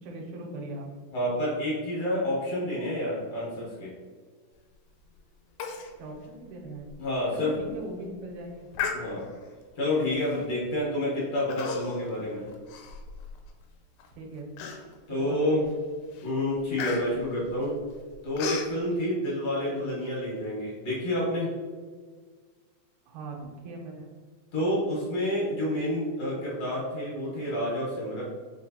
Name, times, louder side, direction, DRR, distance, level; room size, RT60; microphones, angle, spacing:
voice 1, 0.0-0.9 6.0-6.9 7.3-8.7 14.2-14.5 15.1-15.7 23.1-24.1, right 2 dB, 85° right, 0 dB, 2.0 m, -40 dB
voice 2, 1.1-4.0 7.0-7.6 8.9-9.3 9.8-12.5 15.1-15.6 16.2-17.8 18.2-21.5 24.5-28.2, left 1 dB, 60° left, -6 dB, 2.1 m, -29 dB
Human voice, 5.6-5.9 6.2-6.3 6.9-7.0 7.5-7.8 8.7-9.5 10.2-10.5 11.5-12.1 12.5-13.5 14.0-14.1 14.6-15.1 15.6-15.9 16.1-18.7, left 6 dB, 90° left, 2.1 m, -35 dB
4.7 x 3.1 x 2.7 m, 1.5 s
omnidirectional pair, 3.5 m